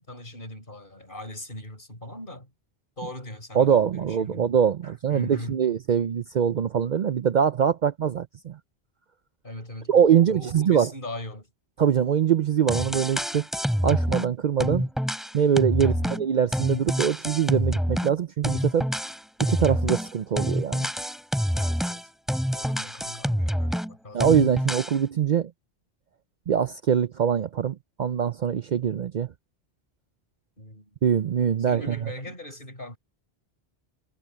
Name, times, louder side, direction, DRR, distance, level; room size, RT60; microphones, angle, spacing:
voice 1, 0.0-2.5 3.0-4.5 4.8-5.6 9.4-11.5 15.8-16.2 21.5-22.1 22.5-24.3 30.6-31.0 31.6-33.0, left 1 dB, 55° left, 5.3 m, -40 dB
voice 2, 3.5-8.6 9.9-10.9 11.8-13.5 13.8-14.9 15.3-18.9 19.4-20.9 24.1-25.5 26.5-29.3 31.0-31.9, right 8 dB, 55° right, 0.6 m, -23 dB
sound 1, 12.4-12.5 12.7-14.3 14.6-18.1 18.4-23.9 24.2-25.0, equal, ahead, 3.0 m, -27 dB
omnidirectional pair, 1.0 m